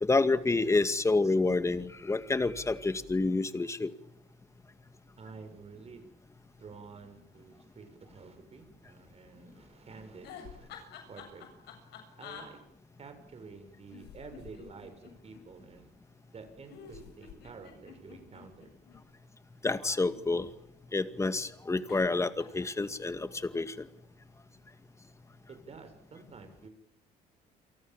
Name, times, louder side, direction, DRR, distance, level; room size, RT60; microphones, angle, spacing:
voice 1, 0.0-3.9 19.6-20.5 20.9-23.9, left 3 dB, 15° left, 11 dB, 2.1 m, -28 dB
voice 2, 5.2-6.1 6.6-10.7 11.1-11.5 12.2-12.6 13.0-16.0 16.3-18.7 25.5-26.7, right 4 dB, 35° right, 7 dB, 7.4 m, -50 dB
sound 1, 10.2-12.5 13.9-15.4 16.7-19.0 19.9-20.8 21.9-22.1 22.4-22.8, left 7 dB, 75° left, 7.7 m, -49 dB
29.5 x 23.5 x 7.5 m, 0.77 s
cardioid pair, 110°, 17 cm